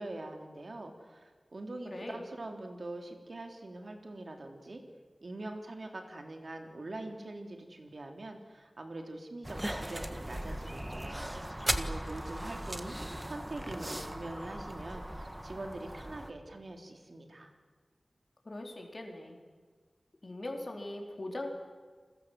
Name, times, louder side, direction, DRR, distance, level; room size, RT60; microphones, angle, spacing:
voice 1, 0.0-4.8 5.2-11.4 11.7-12.9 13.2-17.5, right 2 dB, 60° right, 4 dB, 3.4 m, -43 dB
voice 2, 1.8-2.3 18.4-19.4 20.2-21.5, left 1 dB, 50° left, 2 dB, 4.4 m, -40 dB
sound 1, 9.4-16.3, right 1 dB, 15° right, 1.7 m, -38 dB
29.0 x 21.5 x 7.7 m, 1.5 s
wide cardioid pair, 75°, 0 cm